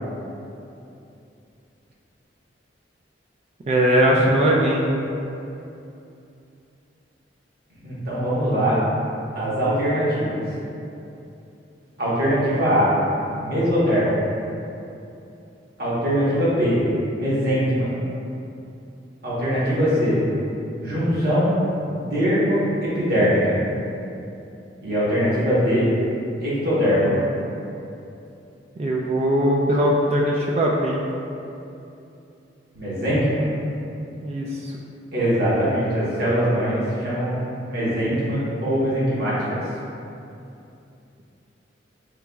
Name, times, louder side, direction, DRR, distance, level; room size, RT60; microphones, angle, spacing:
voice 1, 3.7-4.9 28.8-31.0 34.2-34.7, equal, 35° right, -3 dB, 0.3 m, -20 dB
voice 2, 7.8-8.8 9.3-10.4 12.0-12.9 13.4-14.2 15.8-16.8 17.2-17.9 19.2-20.2 20.8-21.5 21.9-23.6 24.8-25.9 26.4-27.2 32.7-33.5 35.1-37.4 37.7-39.6, equal, 60° right, -10 dB, 1.2 m, -21 dB
5.7 x 2.9 x 2.3 m, 2.8 s
head